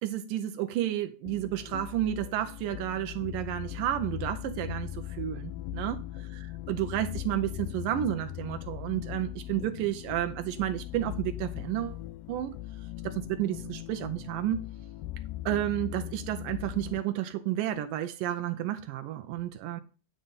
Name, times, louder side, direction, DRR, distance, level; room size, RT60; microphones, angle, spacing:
voice 1, 0.0-6.0 6.3-12.0 12.3-12.5 13.0-14.6 15.5-19.8, right 12 dB, 75° right, 2.1 m, -31 dB
sound 1, 1.2-17.0, left 14 dB, 80° left, 1.9 m, -39 dB
10.0 x 5.3 x 5.4 m
omnidirectional pair, 4.3 m